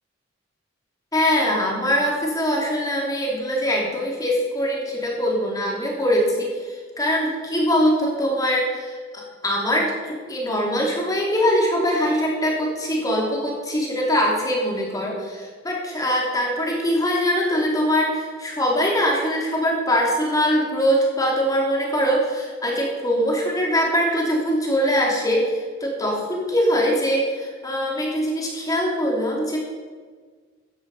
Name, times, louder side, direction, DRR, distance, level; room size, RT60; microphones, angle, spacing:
voice 1, 1.1-29.6, equal, 20° left, -2 dB, 3.0 m, -22 dB
14.5 x 9.8 x 5.5 m, 1.5 s
head